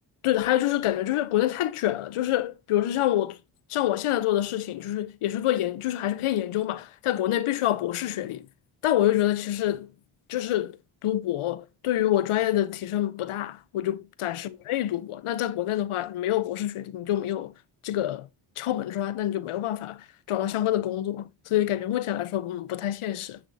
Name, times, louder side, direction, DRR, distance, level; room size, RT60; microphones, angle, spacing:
voice 1, 0.2-3.4 3.7-8.5 8.8-9.9 10.3-17.5 17.8-18.3 18.6-23.4, left 13 dB, 85° left, 0.8 m, -27 dB
8.7 x 7.2 x 2.7 m
cardioid pair, 45°, 49 cm